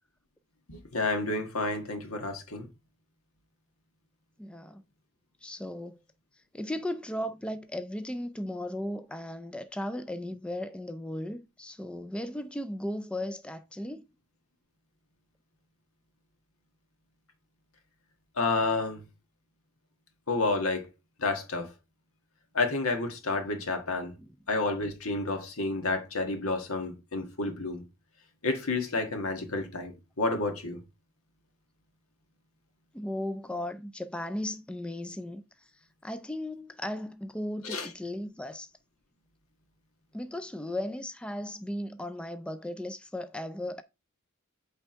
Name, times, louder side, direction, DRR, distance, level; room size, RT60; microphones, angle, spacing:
voice 1, 0.7-2.7 18.4-19.0 20.3-20.9 21.2-21.7 22.5-24.1 24.5-27.8 28.4-30.8 37.6-37.9, left 3 dB, 80° left, 1.6 m, -30 dB
voice 2, 4.4-4.8 5.4-6.0 6.5-14.1 24.2-24.3 32.9-35.4 36.0-38.7 40.1-43.8, left 1 dB, 5° left, 0.3 m, -36 dB
8.3 x 3.4 x 4.4 m
head